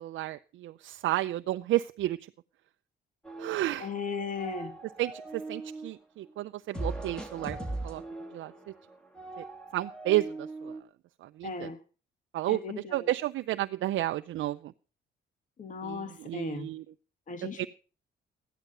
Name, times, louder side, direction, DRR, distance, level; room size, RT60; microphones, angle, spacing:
voice 1, 0.0-2.3 3.4-3.9 5.0-8.0 8.3-8.5 9.4-9.5 9.7-10.8 11.2-11.7 12.3-14.7 15.8-16.8 17.6-17.7, right 15 dB, 75° right, 9 dB, 0.5 m, -32 dB
sound 1, 3.2-4.0 4.2-5.9 6.7-10.8, right 2 dB, 5° left, 2.7 m, -39 dB
voice 2, 3.8-4.7 11.4-11.8 12.5-13.1 15.6-16.7 17.3-17.7, left 5 dB, 40° left, 9 dB, 1.6 m, -37 dB
13.5 x 10.5 x 5.4 m, 0.37 s
cardioid pair, 90°, 20 cm